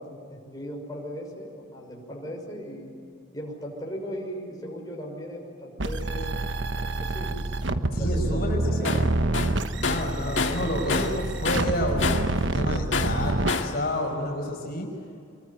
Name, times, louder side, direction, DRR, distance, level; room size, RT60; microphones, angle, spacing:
voice 1, 0.0-2.9 3.3-6.4 6.9-7.4 8.0-9.0, equal, 20° left, -2 dB, 6.1 m, -37 dB
sound 1, 5.8-13.5, right 2 dB, 70° right, 1.2 m, -27 dB
voice 2, 7.9-9.1 9.8-14.9, left 1 dB, 55° left, 0 dB, 5.4 m, -30 dB
Tools, 8.8-9.1 9.3-11.2 11.4-12.4 12.9-13.8, left 4 dB, 70° left, 2.0 m, -28 dB
25.5 x 23.0 x 9.4 m, 2.4 s
head